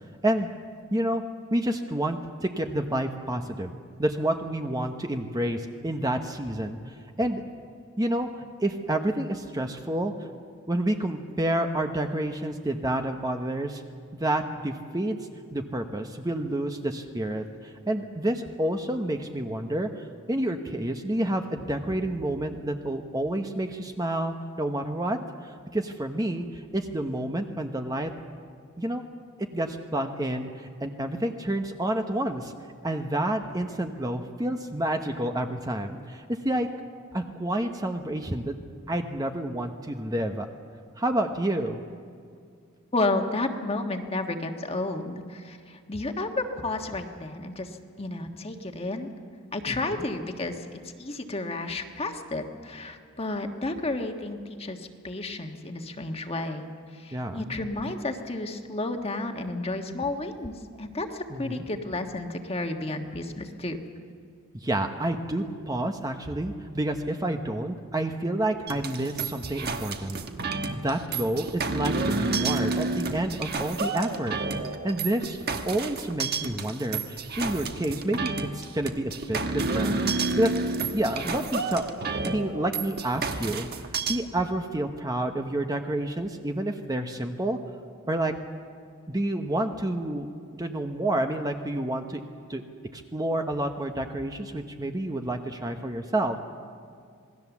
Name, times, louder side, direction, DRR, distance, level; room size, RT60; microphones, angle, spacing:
voice 1, 0.9-1.2 1.5-3.7 4.0-6.8 7.2-7.4 8.0-8.3 8.6-10.1 10.7-13.8 14.1-15.2 15.5-28.1 28.8-29.1 29.5-32.5 32.8-36.7 37.1-38.6 38.9-40.5 41.0-41.8 49.7-50.0 57.1-57.6 61.3-61.6 64.5-70.2 70.8-74.4 74.8-75.4 75.6-80.5 80.9-81.8 82.2-83.7 84.1-87.6 88.1-88.3 89.1-92.2 92.5-92.6 92.9-96.4, right 1 dB, 15° right, 5 dB, 0.9 m, -29 dB
voice 2, 42.9-47.7 48.0-49.1 49.5-56.7 57.0-63.8, left 2 dB, 25° left, 4 dB, 1.5 m, -32 dB
sound 1, 68.7-84.2, right 3 dB, 45° right, 1.3 m, -30 dB
27.0 x 19.5 x 7.2 m, 2.2 s
head